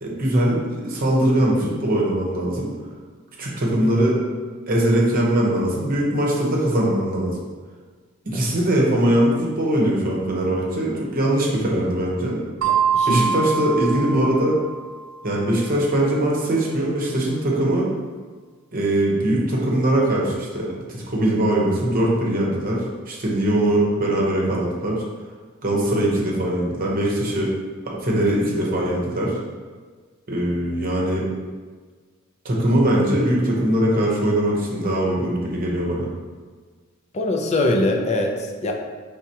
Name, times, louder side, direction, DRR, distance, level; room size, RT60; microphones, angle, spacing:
voice 1, 0.0-2.7 3.4-4.2 4.7-7.4 8.3-12.4 13.0-14.6 15.2-17.9 18.7-25.0 25.6-27.5 27.8-29.4 30.3-31.3 32.4-36.1, right 1 dB, 40° right, -3 dB, 0.9 m, -21 dB
voice 2, 12.6-13.4 37.1-38.7, left 1 dB, 30° left, 2 dB, 0.4 m, -23 dB
sound 1, 12.6-15.1, right 6 dB, 70° right, 0.4 m, -24 dB
4.8 x 3.5 x 2.9 m, 1.5 s
head